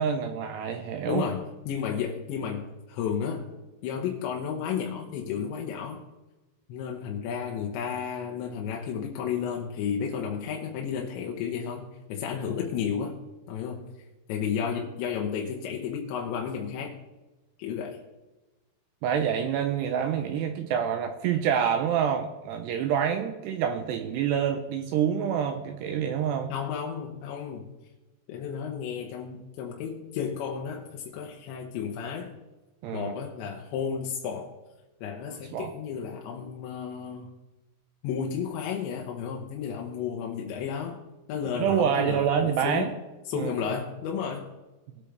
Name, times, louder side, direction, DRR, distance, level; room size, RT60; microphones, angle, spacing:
voice 1, 0.0-1.3 19.0-26.5 32.8-33.1 35.3-35.7 41.6-42.9 43.3-43.5, right 8 dB, 85° right, 6 dB, 2.5 m, -27 dB
voice 2, 1.1-3.5 3.8-6.0 6.7-13.2 13.5-13.9 14.3-17.0 17.6-18.0 26.5-27.7 28.3-32.3 32.9-34.5 35.0-37.3 38.0-41.0 41.3-42.9 43.3-44.5, left 7 dB, 75° left, 0 dB, 3.1 m, -32 dB
21.0 x 8.6 x 3.4 m, 1.1 s
omnidirectional pair, 5.7 m